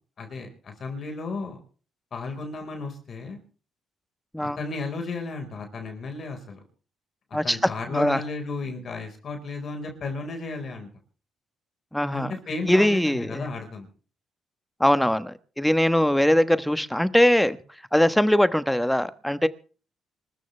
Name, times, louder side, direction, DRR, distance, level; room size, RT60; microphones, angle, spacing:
voice 1, 0.2-1.6 2.1-3.4 4.4-6.6 7.4-10.9 12.1-13.9, left 3 dB, 50° left, 4.6 m, -34 dB
voice 2, 11.9-12.3 12.7-13.5 14.8-17.6 17.9-19.5, equal, 5° left, 1.2 m, -21 dB
26.5 x 14.0 x 3.3 m
cardioid pair, 90°, 0 cm